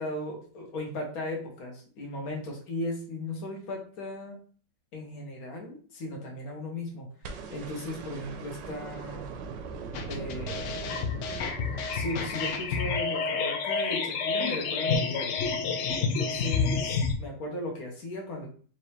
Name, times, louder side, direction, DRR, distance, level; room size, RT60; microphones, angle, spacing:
voice 1, 0.0-4.4 4.9-7.1 7.5-9.3 10.1-11.3 11.9-15.3 16.0-18.5, left 1 dB, 55° left, 0 dB, 1.5 m, -37 dB
sound 1, 7.2-13.4 14.9-15.0, right 5 dB, 80° right, 1.3 m, -41 dB
sound 2, 9.9-17.1, left 5 dB, 85° left, 0.6 m, -29 dB
4.5 x 2.8 x 3.2 m, 0.42 s
omnidirectional pair, 1.9 m